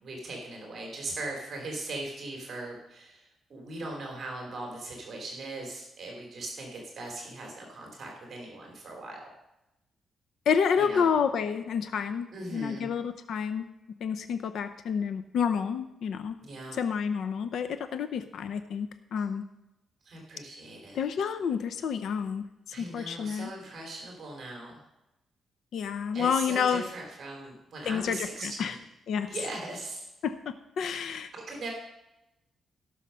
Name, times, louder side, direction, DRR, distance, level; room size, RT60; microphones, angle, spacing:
voice 1, 0.0-9.2 10.8-11.1 12.3-12.9 16.4-16.8 20.0-21.0 22.7-24.8 26.1-28.8 29.3-30.1 31.3-31.7, right 2 dB, 40° right, 0 dB, 2.9 m, -39 dB
voice 2, 10.5-13.7 14.0-16.4 16.7-19.5 20.9-23.5 25.7-26.9 27.8-28.8 29.1-29.3 30.2-31.3, left 6 dB, 65° left, 10 dB, 0.6 m, -29 dB
17.0 x 6.4 x 5.6 m, 0.92 s
wide cardioid pair, 180°, 0 cm